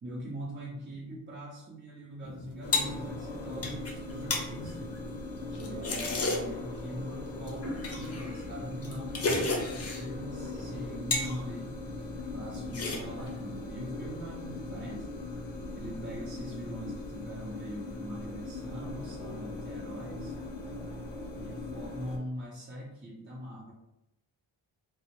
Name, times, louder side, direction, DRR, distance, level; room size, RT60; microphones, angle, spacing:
voice 1, 0.0-4.8 5.5-15.1 15.7-20.3 21.3-23.7, equal, 25° right, -5 dB, 0.6 m, -42 dB
sound 1, 2.2-6.7 7.5-10.1 10.5-11.4 11.7-12.2 12.5-13.4, left 3 dB, 35° left, 0.5 m, -34 dB
sound 2, 2.6-22.2, left 2 dB, 80° left, 0.7 m, -40 dB
2.1 x 2.1 x 2.9 m, 0.86 s
cardioid pair, 65°, 44 cm